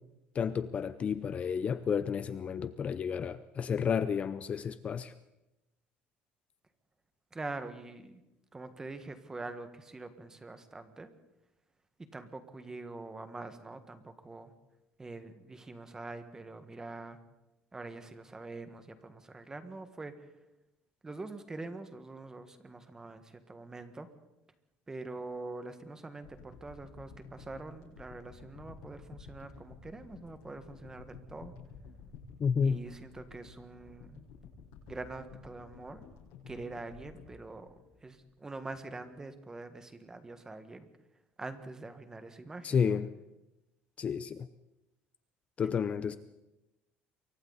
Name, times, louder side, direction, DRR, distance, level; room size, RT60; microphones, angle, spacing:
voice 1, 0.3-5.1 32.4-32.8 42.6-43.1 44.0-44.5 45.6-46.2, left 7 dB, 30° left, 13 dB, 0.6 m, -31 dB
voice 2, 7.3-8.2 8.5-11.1 12.1-14.5 15.0-17.2 17.7-20.3 21.0-24.1 24.9-31.5 32.6-34.2 34.9-36.0 36.5-40.9 41.4-43.0, right 3 dB, 15° right, 9 dB, 1.6 m, -44 dB
sound 1, 26.2-38.5 39.0-39.1, left 5 dB, 85° left, 7.5 m, -52 dB
28.0 x 23.5 x 4.1 m, 0.94 s
cardioid pair, 155°, 4 cm